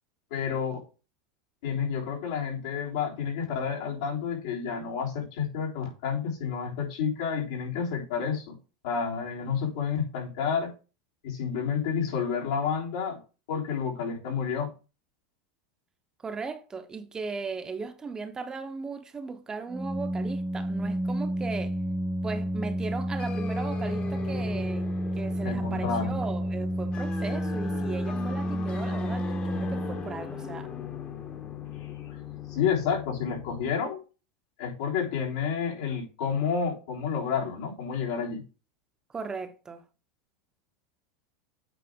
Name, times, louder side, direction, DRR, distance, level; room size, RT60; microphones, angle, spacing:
voice 1, 0.3-0.8 1.6-8.6 8.8-10.7 11.2-13.2 13.5-14.7 25.4-26.2 31.8-31.9 32.5-34.0 34.6-38.4, left 6 dB, 75° left, 3.5 m, -30 dB
voice 2, 16.2-21.8 22.2-24.9 25.2-30.7 39.1-39.9, right 4 dB, 20° right, 0.9 m, -37 dB
Organ, 19.7-30.5, equal, 5° right, 0.5 m, -30 dB
sound 1, 23.2-33.7, left 6 dB, 35° left, 1.3 m, -40 dB
8.5 x 4.8 x 3.7 m
supercardioid pair, 110°, 3 cm